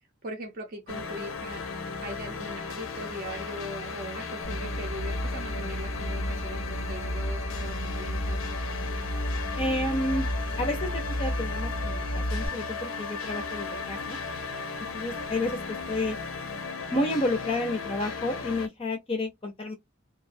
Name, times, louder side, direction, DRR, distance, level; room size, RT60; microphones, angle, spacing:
voice 1, 0.2-8.4, right 1 dB, 45° right, 0.6 m, -40 dB
sound 1, 0.9-18.7, left 4 dB, 80° left, 0.5 m, -36 dB
sound 2, 4.4-12.5, equal, 80° right, 0.7 m, -32 dB
voice 2, 9.6-10.3 10.6-10.9 11.2-14.2 14.9-16.2 16.9-19.7, left 1 dB, 25° left, 0.5 m, -30 dB
2.4 x 2.1 x 2.5 m
head